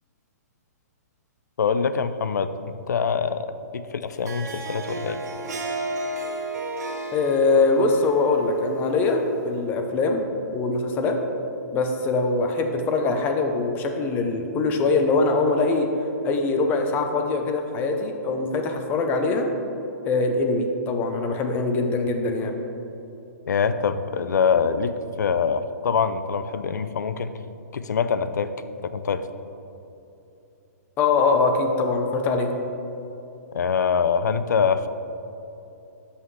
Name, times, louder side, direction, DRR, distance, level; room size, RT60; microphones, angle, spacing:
voice 1, 1.6-2.5 2.9-3.5 3.7-5.2 23.5-24.9 25.2-27.3 27.7-28.5 28.9-29.3 33.5-34.9, left 6 dB, 85° left, 12 dB, 0.5 m, -24 dB
Harp, 4.1-9.5, right 2 dB, 75° right, 1.1 m, -33 dB
voice 2, 7.1-10.2 10.5-11.2 11.7-15.9 16.2-19.5 20.1-22.5 31.0-32.5, left 3 dB, 20° left, 4 dB, 0.6 m, -22 dB
12.5 x 5.6 x 3.2 m, 2.9 s
hypercardioid pair, 155°, 9 cm